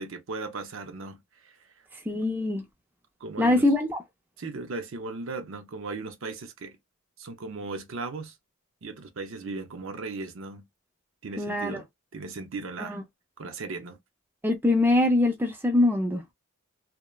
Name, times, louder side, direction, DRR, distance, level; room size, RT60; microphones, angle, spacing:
voice 1, 0.0-1.6 3.2-3.7 4.4-6.8 7.2-8.3 8.8-10.6 11.2-11.9 12.1-13.0 13.4-14.0, right 3 dB, 60° right, 0.5 m, -37 dB
voice 2, 2.1-2.6 3.4-4.0 11.4-11.8 12.8-13.0 14.4-16.2, left 2 dB, 10° right, 0.4 m, -23 dB
3.1 x 2.0 x 2.3 m
head